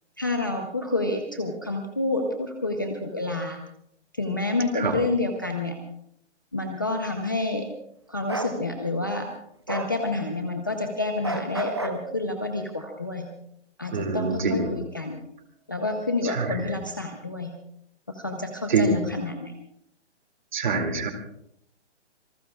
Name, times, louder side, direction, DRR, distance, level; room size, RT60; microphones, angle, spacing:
voice 1, 0.2-3.6 4.1-5.8 6.5-7.7 8.1-9.3 9.7-13.3 13.8-15.2 15.7-17.5 18.1-19.5, left 2 dB, 20° left, 3 dB, 0.6 m, -28 dB
Bark, 8.3-8.5 9.7-9.9 11.2-12.0, right 2 dB, 25° right, 0.6 m, -30 dB
voice 2, 13.9-14.8 16.3-16.7 18.7-19.0 20.5-21.1, right 3 dB, 40° right, 5 dB, 2.5 m, -25 dB
27.0 x 19.5 x 2.4 m, 0.73 s
hypercardioid pair, 180°, 35 cm